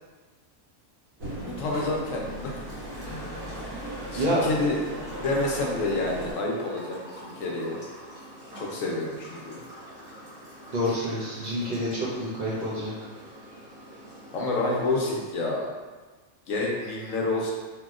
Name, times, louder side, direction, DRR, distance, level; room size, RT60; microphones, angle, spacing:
sound 1, 1.2-6.3, right 1 dB, 70° right, 1.5 m, -37 dB
voice 1, 1.4-2.5 3.0-3.3 4.1-7.8 8.5-9.6 14.3-15.7 16.5-17.5, left 2 dB, 75° left, -2 dB, 1.0 m, -29 dB
sound 2, 1.9-15.1, equal, 25° left, 1.2 m, -46 dB
voice 2, 4.1-4.5 10.7-12.9, equal, 40° right, -7 dB, 0.8 m, -27 dB
2.8 x 2.8 x 2.4 m, 1.4 s
omnidirectional pair, 1.4 m